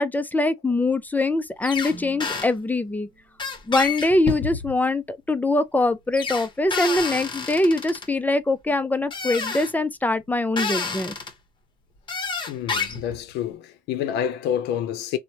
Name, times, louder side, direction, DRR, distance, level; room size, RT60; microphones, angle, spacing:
voice 1, 0.0-3.1 3.7-11.1, left 2 dB, 10° left, 0.4 m, -23 dB
sound 1, 1.6-1.9 2.2-2.5 3.4-4.8 6.1-8.1 9.1-9.7 10.6-11.3 12.1-13.2, left 4 dB, 30° left, 0.8 m, -29 dB
sound 2, 1.9-4.3, right 3 dB, 35° right, 1.0 m, -48 dB
voice 2, 12.5-15.2, left 9 dB, 90° left, 0.6 m, -28 dB
3.1 x 2.1 x 2.7 m
cardioid pair, 110°, 17 cm